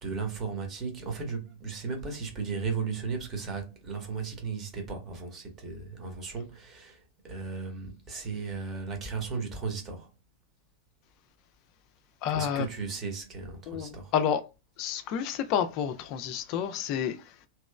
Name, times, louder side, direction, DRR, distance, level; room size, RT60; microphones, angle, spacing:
voice 1, 0.0-10.1 12.3-14.1, right 5 dB, 30° right, 1.0 m, -35 dB
voice 2, 12.2-12.7 13.7-14.4 14.8-17.2, left 8 dB, 40° left, 0.4 m, -29 dB
2.9 x 2.9 x 2.3 m
figure-of-eight pair, 90°, 0 cm